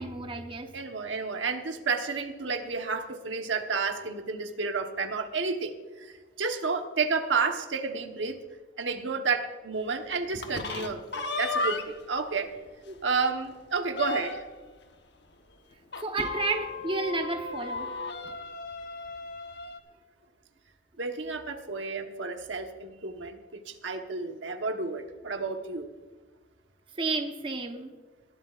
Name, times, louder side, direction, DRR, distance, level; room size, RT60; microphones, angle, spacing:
voice 1, 0.0-0.7 12.9-13.0 16.0-17.9 27.0-27.9, right 3 dB, 30° right, 5 dB, 1.0 m, -31 dB
voice 2, 0.7-8.4 8.8-12.5 13.0-14.4 21.0-25.8, right 4 dB, 85° right, 5 dB, 1.2 m, -31 dB
sound 1, 10.3-12.1 12.6-12.7 13.0-13.1 13.4-14.6 15.9-19.8, left 3 dB, 65° left, 1.1 m, -35 dB
20.5 x 12.0 x 2.5 m, 1.3 s
head